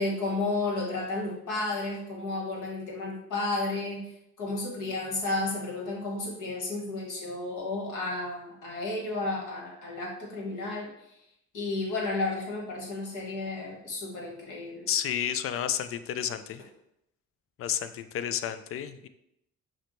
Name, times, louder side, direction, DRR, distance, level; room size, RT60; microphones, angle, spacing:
voice 1, 0.0-4.1 4.4-10.9 11.5-14.9, left 2 dB, 60° left, -2 dB, 1.5 m, -32 dB
voice 2, 14.9-16.6 17.6-19.1, left 10 dB, 40° left, 12 dB, 0.4 m, -31 dB
5.6 x 2.1 x 3.2 m, 0.79 s
hypercardioid pair, 55°, 35 cm